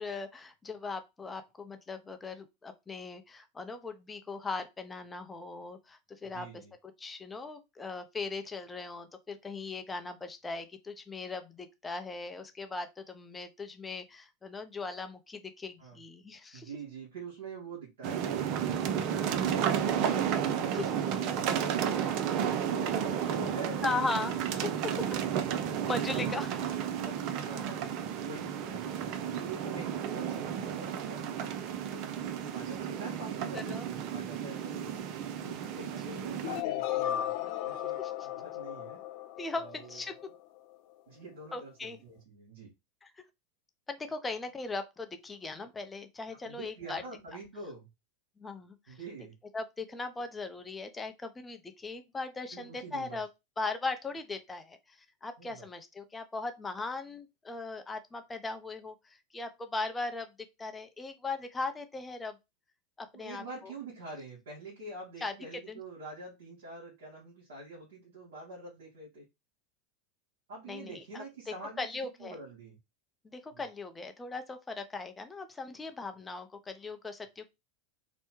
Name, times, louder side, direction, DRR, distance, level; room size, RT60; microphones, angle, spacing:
voice 1, 0.0-6.5 7.0-16.7 20.7-20.9 21.9-22.0 23.8-25.0 25.9-26.6 33.7-33.8 38.0-38.1 39.4-40.2 41.5-42.0 43.0-43.2 43.9-47.0 48.4-49.0 49.5-53.3 53.6-60.3 60.6-62.4 63.0-63.7 65.2-65.3 65.7-65.8 70.7-71.0 71.8-72.3 73.2-77.5, left 3 dB, 15° left, 0.6 m, -39 dB
voice 2, 6.3-6.7 15.8-16.0 16.5-22.3 22.7-24.0 25.0-25.3 27.0-35.0 35.4-39.0 39.5-40.0 41.1-42.7 46.3-47.9 48.9-49.4 52.5-53.2 55.4-55.7 63.1-69.3 70.5-72.8 73.5-73.6, right 3 dB, 75° right, 1.7 m, -46 dB
sound 1, 18.0-36.6, right 8 dB, 55° right, 0.4 m, -32 dB
sound 2, 36.4-40.3, left 12 dB, 60° left, 0.4 m, -35 dB
3.4 x 2.1 x 3.1 m
hypercardioid pair, 100°, 0 cm